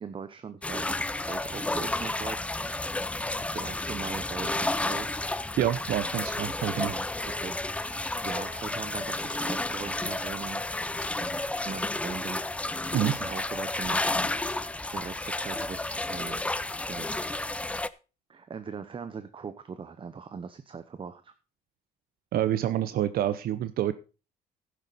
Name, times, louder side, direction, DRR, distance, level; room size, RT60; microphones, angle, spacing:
voice 1, 0.0-2.9 3.5-5.2 6.8-8.0 8.2-10.6 11.2-12.8 13.1-14.5 14.9-16.4 16.9-17.3 18.3-21.3, right 6 dB, 30° right, 11 dB, 0.9 m, -40 dB
sound 1, 0.6-17.9, left 2 dB, 5° left, 0.5 m, -31 dB
voice 2, 5.6-6.9 12.9-13.2 22.3-23.9, right 12 dB, 60° right, 13 dB, 0.7 m, -27 dB
12.0 x 9.8 x 4.1 m, 0.33 s
cardioid pair, 110°, 17 cm